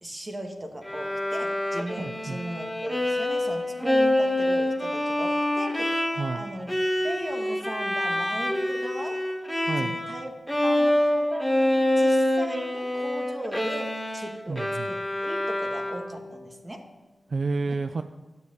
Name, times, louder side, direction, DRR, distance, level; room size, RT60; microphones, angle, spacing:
voice 1, 0.0-6.0 6.3-6.8 7.0-9.2 9.8-10.3 10.6-11.5 12.0-16.8 17.7-17.8, right 1 dB, 25° right, 3 dB, 2.2 m, -37 dB
Bowed string instrument, 0.9-10.2 10.5-16.3, left 1 dB, 5° left, 1.5 m, -26 dB
voice 2, 2.0-2.4 6.1-6.4 9.7-10.0 14.5-14.9 17.3-18.0, right 3 dB, 60° right, 9 dB, 0.6 m, -30 dB
12.5 x 6.9 x 9.5 m, 1.1 s
cardioid pair, 70°, 0 cm